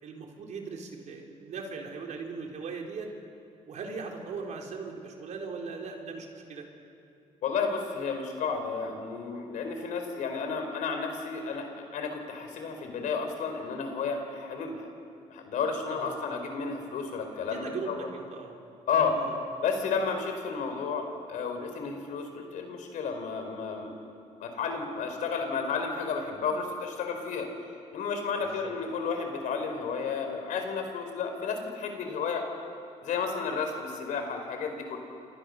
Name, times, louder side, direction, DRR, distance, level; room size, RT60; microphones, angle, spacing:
voice 1, 0.0-3.1 3.7-6.6 15.9-16.2 17.5-18.6 19.1-19.3 28.4-28.7, right 4 dB, 70° right, 1 dB, 4.3 m, -39 dB
voice 2, 7.4-14.9 15.3-18.1 18.9-19.2 19.6-23.9 24.4-27.5 27.9-32.5 33.0-35.0, left 5 dB, 85° left, 5 dB, 4.4 m, -32 dB
29.5 x 27.5 x 6.7 m, 2.6 s
cardioid pair, 105°, 13 cm